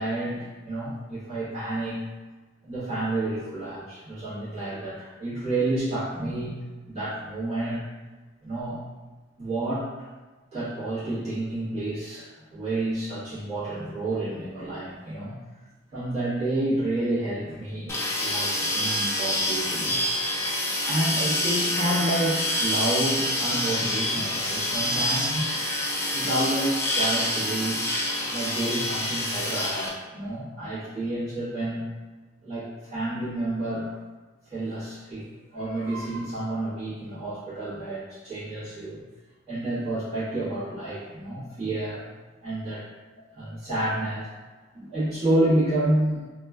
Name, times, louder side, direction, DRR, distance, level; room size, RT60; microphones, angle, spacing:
voice 1, 0.0-2.0 2.6-7.9 8.4-8.8 9.4-10.1 10.5-15.4 15.9-20.0 20.9-25.6 26.1-31.8 32.4-33.9 34.4-39.0 39.5-42.1 42.4-42.8 43.3-44.3 44.7-46.2, right 1 dB, 35° right, -13 dB, 1.2 m, -29 dB
sound 1, 17.9-29.9, left 1 dB, 15° left, 0.3 m, -27 dB
3.0 x 2.3 x 2.3 m, 1.3 s
head